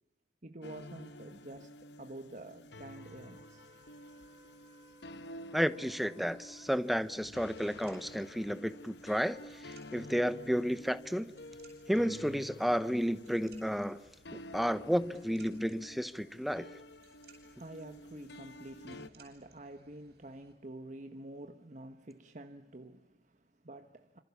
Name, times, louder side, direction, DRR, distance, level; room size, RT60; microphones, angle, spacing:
voice 1, 0.4-3.7 17.3-24.2, right 1 dB, 45° right, 1.3 m, -49 dB
sound 1, 0.6-19.1, left 1 dB, 75° left, 1.1 m, -51 dB
Wind instrument woodwind instrument, 2.9-6.9, right 2 dB, 15° right, 7.2 m, -62 dB
voice 2, 5.5-11.3 11.9-14.0 14.3-16.7, equal, ahead, 0.9 m, -32 dB
sound 2, 6.3-20.5, right 3 dB, 60° right, 7.9 m, -64 dB
27.5 x 27.0 x 7.1 m
head